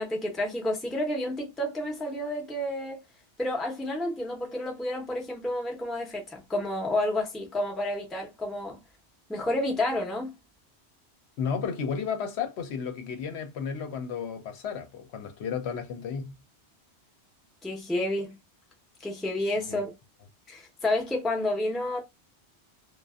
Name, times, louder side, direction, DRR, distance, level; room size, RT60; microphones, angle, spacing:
voice 1, 0.0-3.0 3.4-8.8 9.3-10.3 17.6-18.4 19.0-20.0 20.5-22.0, left 1 dB, ahead, 0.5 m, -30 dB
voice 2, 11.4-16.3 19.7-19.8, left 6 dB, 75° left, 0.9 m, -33 dB
2.4 x 2.3 x 2.3 m
omnidirectional pair, 1.1 m